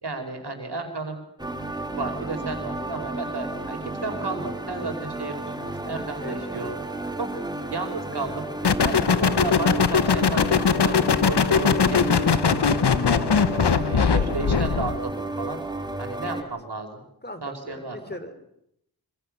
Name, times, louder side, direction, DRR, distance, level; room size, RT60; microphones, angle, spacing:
voice 1, 0.0-1.2 1.9-6.7 7.2-7.3 7.7-8.5 8.8-10.9 11.3-13.4 13.8-14.1 14.3-15.6 16.0-17.0 17.4-18.1, right 3 dB, 75° right, 5 dB, 5.3 m, -33 dB
sound 1, 1.4-16.4, right 2 dB, 10° right, 3.0 m, -32 dB
sound 2, 8.6-15.0, left 6 dB, 75° left, 1.2 m, -21 dB
voice 2, 14.0-14.8 16.3-16.5 17.2-18.5, left 1 dB, 25° left, 9 dB, 3.4 m, -39 dB
25.5 x 24.5 x 6.8 m, 0.77 s
cardioid pair, 45°, 41 cm